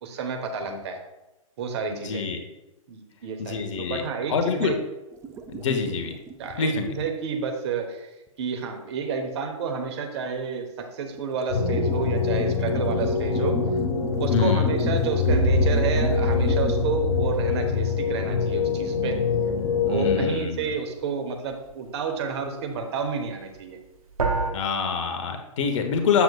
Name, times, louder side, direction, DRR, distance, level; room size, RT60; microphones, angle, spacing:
voice 1, 0.0-1.0 1.6-2.2 2.9-4.8 6.4-8.1 8.4-13.6 14.2-19.2 19.9-23.8, right 5 dB, 50° right, 5 dB, 1.0 m, -30 dB
voice 2, 1.9-2.4 3.4-4.0 4.3-4.7 5.5-6.2 6.6-6.9 14.3-14.7 19.8-20.7 24.5-26.2, left 5 dB, 60° left, 6 dB, 1.0 m, -26 dB
sound 1, 5.1-6.7 8.3-8.4 10.7-10.8 11.0-16.8, right 3 dB, 15° right, 0.4 m, -37 dB
sound 2, 11.5-20.3, left 6 dB, 80° left, 1.6 m, -24 dB
sound 3, 15.2-19.4 24.2-24.5, right 4 dB, 80° right, 0.8 m, -27 dB
7.7 x 6.8 x 2.3 m, 0.99 s
figure-of-eight pair, 120°, 18 cm